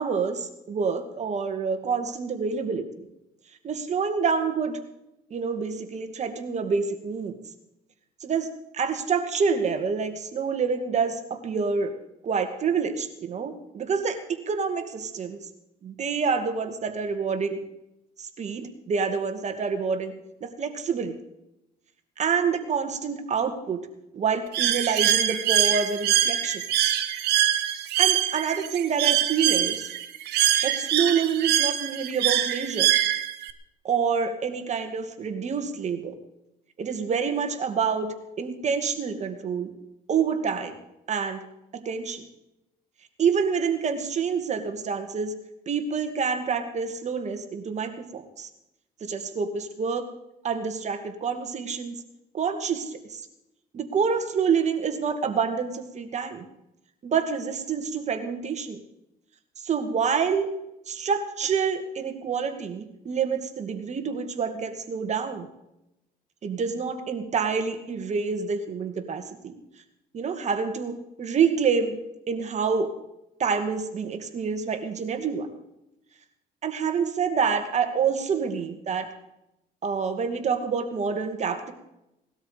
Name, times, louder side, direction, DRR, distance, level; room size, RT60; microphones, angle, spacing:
voice 1, 0.0-3.1 3.6-4.8 5.3-7.3 8.2-11.9 12.2-14.2 14.5-15.4 15.8-17.6 18.2-20.1 20.4-21.1 22.2-23.9 24.1-26.6 28.0-29.9 30.6-32.9 33.8-36.1 36.8-39.7 40.1-40.7 41.1-41.4 41.7-42.3 43.2-45.3 45.7-48.5 49.0-50.0 50.4-52.0 52.3-53.2 53.7-56.4 57.0-58.8 59.6-60.5 60.9-65.5 66.4-69.5 70.1-72.0 72.3-72.9 73.4-75.5 76.6-79.1 79.8-81.7, right 6 dB, 40° right, 7 dB, 2.3 m, -27 dB
Bird, 24.5-33.5, right 11 dB, 80° right, 1.5 m, -24 dB
19.0 x 12.5 x 5.2 m, 0.87 s
cardioid pair, 110°, 17 cm